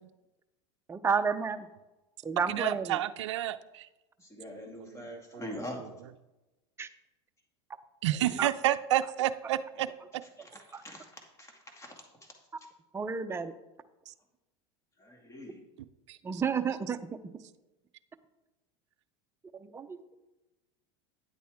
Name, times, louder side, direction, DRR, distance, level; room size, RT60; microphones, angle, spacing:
voice 1, 0.9-1.7 2.2-3.0 6.8-6.9 8.4-8.5 10.7-10.8 12.9-13.5 16.2-17.0 19.5-20.0, right 6 dB, 15° right, 9 dB, 0.6 m, -31 dB
voice 2, 2.5-3.9 8.0-9.9 14.1-14.2 16.1-16.4, right 13 dB, 80° right, 12 dB, 0.4 m, -30 dB
voice 3, 4.2-6.1 8.0-8.5 10.2-11.9 12.2-12.3 15.0-15.6, left 1 dB, 20° left, 2 dB, 2.3 m, -44 dB
9.6 x 8.3 x 3.6 m, 1.0 s
hypercardioid pair, 100°, 15 cm